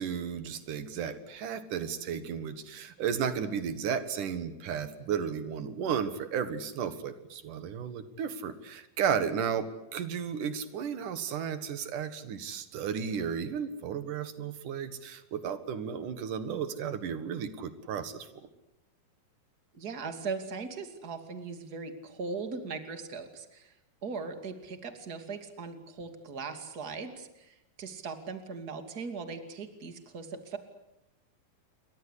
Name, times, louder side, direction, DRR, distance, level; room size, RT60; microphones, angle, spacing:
voice 1, 0.0-18.5, right 7 dB, 65° right, 11 dB, 3.0 m, -34 dB
voice 2, 19.7-23.7 24.0-30.6, right 4 dB, 30° right, 7 dB, 2.8 m, -39 dB
29.0 x 23.5 x 8.4 m, 0.86 s
omnidirectional pair, 4.1 m